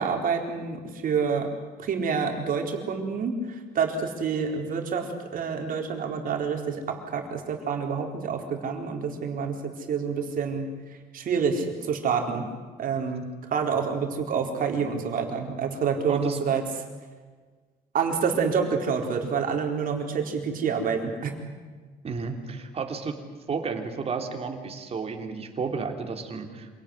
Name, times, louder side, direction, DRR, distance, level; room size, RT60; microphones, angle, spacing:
voice 1, 0.0-1.5 1.8-10.7 11.1-12.5 12.8-16.6 17.9-21.3, right 6 dB, 55° right, 3 dB, 4.3 m, -28 dB
voice 2, 16.1-16.4 22.0-23.2 23.5-26.7, right 5 dB, 35° right, 4 dB, 3.5 m, -32 dB
26.5 x 18.0 x 10.0 m, 1.4 s
cardioid pair, 110°, 17 cm